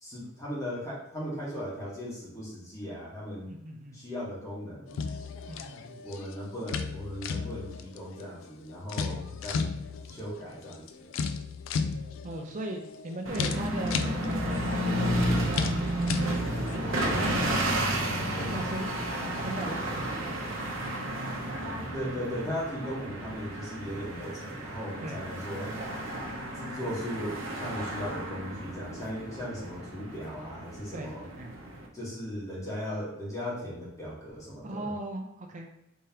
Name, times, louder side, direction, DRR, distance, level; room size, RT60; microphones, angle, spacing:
voice 1, 0.0-3.5 3.9-5.0 6.0-9.7 10.0-11.1 21.9-25.7 26.6-31.2 31.9-34.9, equal, 15° left, -7 dB, 1.4 m, -37 dB
voice 2, 3.5-4.0 5.5-6.0 8.9-9.2 12.2-16.4 18.3-18.9 19.4-20.7 25.0-25.2 30.9-31.5 34.6-35.7, right 1 dB, 40° right, 3 dB, 0.5 m, -39 dB
sound 1, 4.9-16.8, left 5 dB, 85° left, 0.3 m, -35 dB
sound 2, 13.3-31.9, right 1 dB, 90° right, 0.8 m, -32 dB
3.5 x 3.2 x 2.9 m, 0.85 s
head